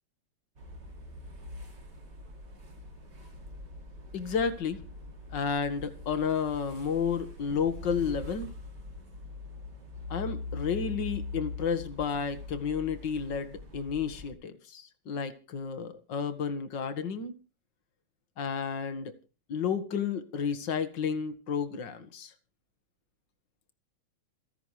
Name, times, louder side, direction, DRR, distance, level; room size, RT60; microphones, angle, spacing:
sound 1, 0.6-14.3, left 3 dB, 55° right, 3.7 m, -43 dB
voice 1, 4.1-4.8 5.3-8.5 10.1-17.3 18.4-19.2 19.5-22.3, left 6 dB, 60° left, 2.4 m, -31 dB
29.0 x 10.0 x 3.3 m
omnidirectional pair, 2.2 m